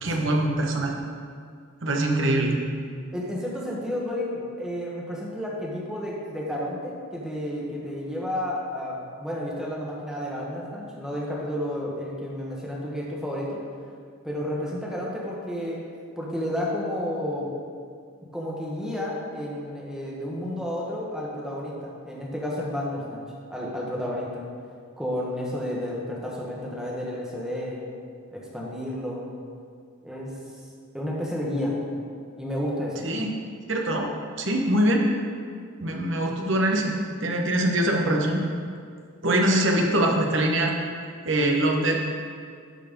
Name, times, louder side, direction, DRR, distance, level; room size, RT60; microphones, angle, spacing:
voice 1, 0.0-0.9 1.8-2.6 33.0-33.3 33.7-34.1 34.4-35.1 35.8-36.9 37.2-38.4 39.2-40.7 41.2-42.0, right 1 dB, 60° right, 1 dB, 1.2 m, -23 dB
voice 2, 3.1-13.6 14.2-15.8 16.2-17.5 18.3-23.2 23.5-24.4 25.0-27.8 28.3-29.2 30.0-30.3 30.9-31.8 32.4-33.0, left 1 dB, 5° right, -5 dB, 1.5 m, -31 dB
12.5 x 4.6 x 5.2 m, 2.2 s
head